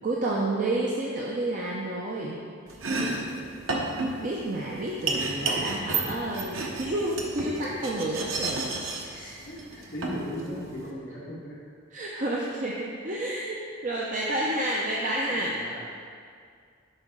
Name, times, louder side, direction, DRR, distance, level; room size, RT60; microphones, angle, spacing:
voice 1, 0.0-2.4 4.2-8.7 9.0-9.4 11.9-15.6, right 1 dB, 40° right, -4 dB, 0.6 m, -30 dB
Domestic sounds home sounds, 2.7-10.9, right 3 dB, 75° right, 0.8 m, -32 dB
voice 2, 2.8-3.7 5.9-6.2 9.4-11.6 15.0-15.9, equal, 55° left, -6 dB, 1.7 m, -39 dB
10.5 x 4.1 x 3.6 m, 2.2 s
head